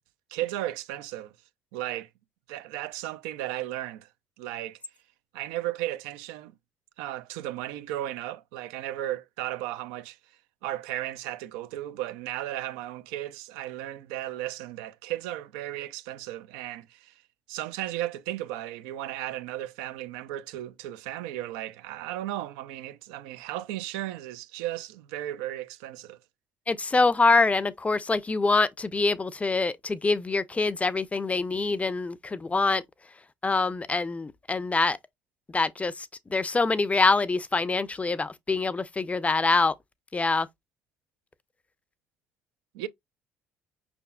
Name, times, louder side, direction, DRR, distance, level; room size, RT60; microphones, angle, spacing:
voice 1, 0.3-1.3 1.7-2.1 2.5-4.1 4.4-4.8 5.3-6.5 7.0-10.2 10.6-17.1 17.5-26.2 42.7-42.9, right 14 dB, 70° right, 0.5 m, -35 dB
voice 2, 26.7-32.8 33.4-35.0 35.5-39.7 40.1-40.5, left 3 dB, 20° left, 0.5 m, -25 dB
5.8 x 3.5 x 2.2 m
figure-of-eight pair, 50°, 7 cm